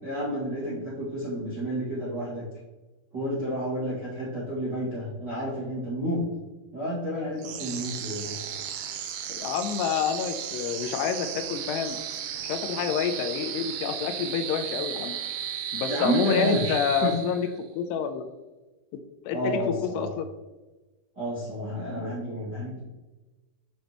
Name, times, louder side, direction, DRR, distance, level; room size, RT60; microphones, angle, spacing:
voice 1, 0.0-2.4 3.1-6.3 6.7-8.4 15.9-16.7 17.0-17.2 19.3-20.1 21.1-22.8, right 1 dB, 40° right, -10 dB, 1.7 m, -30 dB
sound 1, 7.4-17.6, right 9 dB, 80° right, 2.1 m, -35 dB
voice 2, 9.3-12.0 12.4-15.2 15.7-17.5 17.7-18.3 18.9-20.3, left 8 dB, 85° left, 7 dB, 2.6 m, -28 dB
9.0 x 5.3 x 3.0 m, 1.1 s
omnidirectional pair, 4.9 m